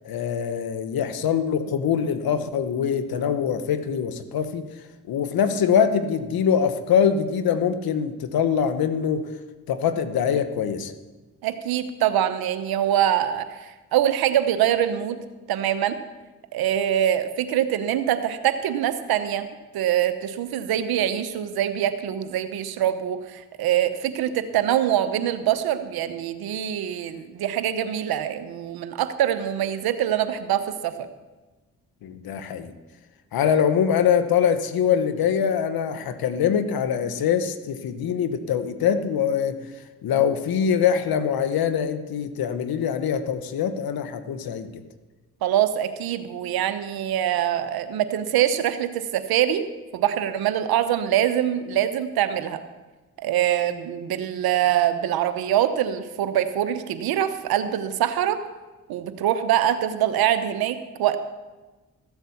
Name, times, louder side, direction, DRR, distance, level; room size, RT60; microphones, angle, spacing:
voice 1, 0.0-4.6 5.1-9.3 9.7-10.9 32.0-32.7 33.3-39.6 40.0-44.7, left 7 dB, 80° left, 10 dB, 1.2 m, -23 dB
voice 2, 11.4-15.2 15.5-16.0 16.5-19.5 19.7-31.1 45.4-49.7 49.9-52.6 53.2-58.4 58.9-61.2, right 11 dB, 85° right, 11 dB, 0.9 m, -24 dB
14.5 x 8.1 x 7.1 m, 1.2 s
supercardioid pair, 50°, 36 cm